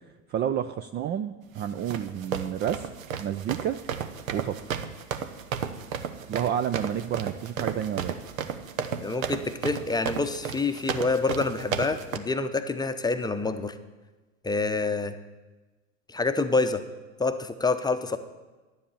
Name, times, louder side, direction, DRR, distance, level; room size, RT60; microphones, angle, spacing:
voice 1, 0.3-2.9 3.2-3.8 4.3-4.8 6.3-8.1, right 9 dB, 25° right, 10 dB, 0.4 m, -30 dB
sound 1, 1.6-12.2, right 7 dB, 80° right, 0.9 m, -33 dB
voice 2, 9.0-13.7 14.4-15.1 16.1-16.8 17.2-18.2, left 3 dB, 10° left, 9 dB, 0.7 m, -27 dB
10.5 x 7.6 x 7.0 m, 1.2 s
hypercardioid pair, 90°, 40 cm